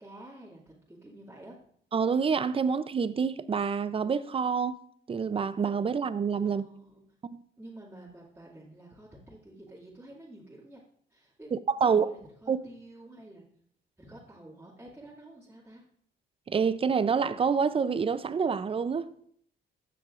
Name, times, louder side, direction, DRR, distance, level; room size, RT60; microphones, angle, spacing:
voice 1, 0.0-1.6 6.4-7.1 7.6-10.8 11.1-11.5 11.8-13.4 14.0-15.8, right 1 dB, 10° right, 2.2 m, -49 dB
voice 2, 1.9-4.8 5.1-6.7 7.3-7.4 11.5-12.1 12.5-12.6 16.5-19.1, right 6 dB, 30° right, 0.5 m, -27 dB
15.5 x 6.0 x 2.5 m
cardioid pair, 90°, 20 cm